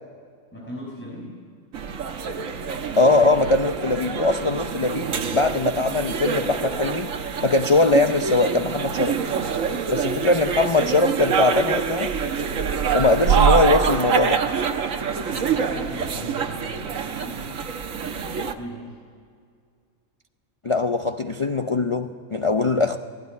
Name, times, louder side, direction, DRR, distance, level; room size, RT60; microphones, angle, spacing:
voice 1, 0.5-1.4 12.9-13.2 15.3-17.5 18.4-18.9 22.7-22.9, equal, 10° left, 5.7 m, -39 dB
sound 1, 1.7-18.5, right 6 dB, 75° right, 1.4 m, -25 dB
voice 2, 3.0-7.1 7.4-9.2 9.9-12.1 12.9-14.4 20.6-23.0, left 3 dB, 40° left, 0.4 m, -21 dB
18.0 x 16.5 x 9.8 m
omnidirectional pair, 1.4 m